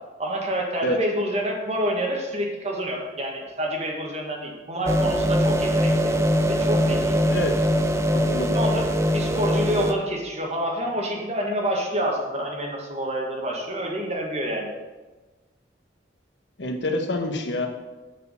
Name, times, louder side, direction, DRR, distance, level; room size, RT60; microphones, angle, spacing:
voice 1, 0.2-6.1 6.5-7.2 8.5-14.7, equal, 35° right, 0 dB, 1.5 m, -28 dB
sound 1, 4.9-9.9, equal, 15° right, 0.5 m, -22 dB
voice 2, 8.1-8.5 16.6-17.7, left 1 dB, 80° left, 3 dB, 1.2 m, -27 dB
7.7 x 4.9 x 6.7 m, 1.2 s
head